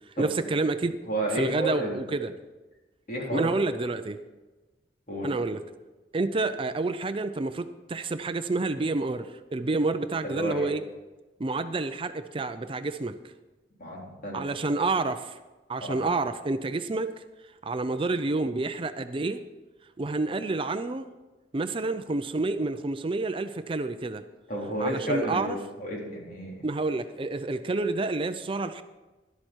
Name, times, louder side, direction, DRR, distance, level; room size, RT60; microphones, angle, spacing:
voice 1, 0.2-1.0 1.3-2.3 3.3-4.2 5.2-5.6 6.1-10.8 11.4-13.2 14.3-15.4 15.7-17.1 17.6-19.4 20.0-21.1 21.5-24.3 24.8-25.6 26.6-28.8, right 3 dB, 30° right, 10 dB, 0.5 m, -29 dB
voice 2, 1.1-2.1 3.1-3.7 5.1-5.3 10.2-10.7 13.8-14.5 15.8-16.0 24.5-26.7, right 1 dB, 50° left, -3 dB, 3.9 m, -31 dB
12.5 x 12.0 x 4.5 m, 1.2 s
head